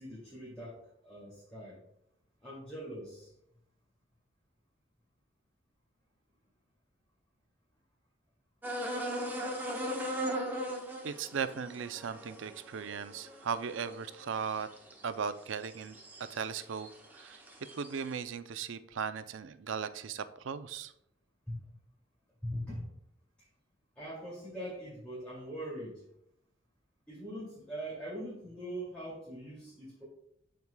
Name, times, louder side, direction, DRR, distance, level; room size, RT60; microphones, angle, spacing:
voice 1, 0.0-1.8 2.4-3.3 21.5-21.6 22.4-22.9 24.0-26.0 27.1-30.0, equal, 5° left, -9 dB, 2.3 m, -42 dB
sound 1, 8.6-15.0 15.6-16.4 16.8-17.9, equal, 10° right, 1.1 m, -38 dB
voice 2, 11.0-14.7 15.0-16.9 17.1-17.4 17.7-20.9, right 6 dB, 70° right, 12 dB, 0.4 m, -37 dB
12.5 x 4.7 x 2.2 m, 0.76 s
head